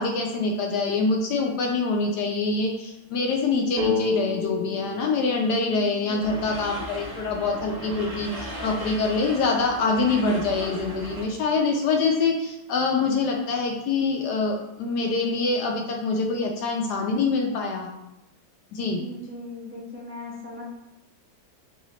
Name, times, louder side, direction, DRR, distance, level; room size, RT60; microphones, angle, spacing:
voice 1, 0.0-17.9 18.7-19.0, left 3 dB, 70° left, 1 dB, 1.0 m, -25 dB
sound 1, 3.8-7.4, left 4 dB, 65° right, 1.7 m, -32 dB
voice 2, 5.7-6.3 19.0-20.6, left 1 dB, 20° right, -6 dB, 0.3 m, -39 dB
sound 2, 6.2-11.3, right 1 dB, 35° right, 1.0 m, -37 dB
3.9 x 2.9 x 4.3 m, 0.91 s
omnidirectional pair, 2.1 m